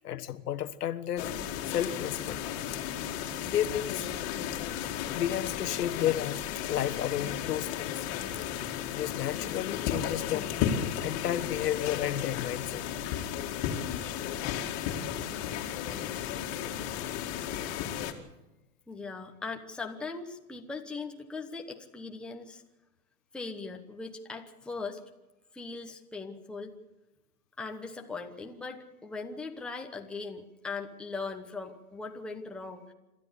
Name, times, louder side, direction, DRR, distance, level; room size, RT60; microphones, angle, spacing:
voice 1, 0.0-1.3 1.7-2.4 2.7-2.8 3.4-4.1 4.8-8.1 8.4-8.5 8.9-10.5 11.0-12.8, left 11 dB, 80° left, 10 dB, 1.4 m, -32 dB
sound 1, 1.2-18.1, left 9 dB, 30° left, 2.2 m, -34 dB
voice 2, 18.9-22.6 23.3-25.0 25.5-26.8 27.6-32.9, left 4 dB, ahead, 3 dB, 1.0 m, -39 dB
27.0 x 13.5 x 8.0 m, 1.0 s
hypercardioid pair, 150°, 46 cm